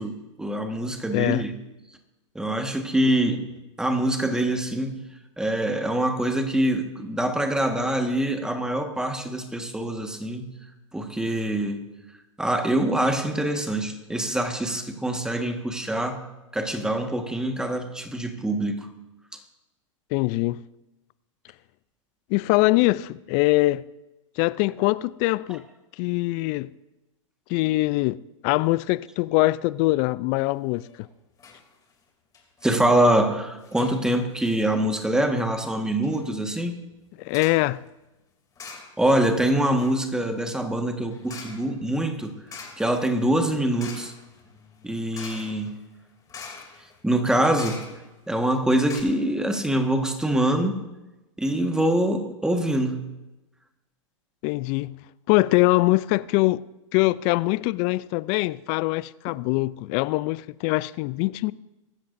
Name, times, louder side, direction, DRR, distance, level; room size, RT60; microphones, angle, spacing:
voice 1, 0.0-1.5 2.3-3.5 3.8-5.0 5.4-10.5 10.9-11.8 12.4-16.2 16.5-18.9 25.5-25.6 32.6-36.8 39.0-42.4 42.8-44.1 44.8-45.8 47.0-47.8 48.3-50.9 51.4-53.0, right 1 dB, 5° right, 1.5 m, -24 dB
voice 2, 1.1-1.5 20.1-20.6 22.3-23.8 24.4-25.6 26.0-26.7 27.5-30.9 37.2-37.8 54.4-55.0 55.3-56.6 56.9-61.5, left 20 dB, 40° left, 0.4 m, -23 dB
Sonicsnaps-OM-FR-porte-qui-clacque, 30.7-31.1 31.4-31.6 31.9-32.0 32.3-32.8 33.6-34.0 34.7-35.1 35.6-35.7 36.0-36.3 37.3-37.7 38.6-39.2 39.5-48.3 48.6-48.7 48.9-49.0, left 5 dB, 20° left, 2.9 m, -44 dB
24.0 x 13.0 x 2.6 m
hypercardioid pair, 120°, 17 cm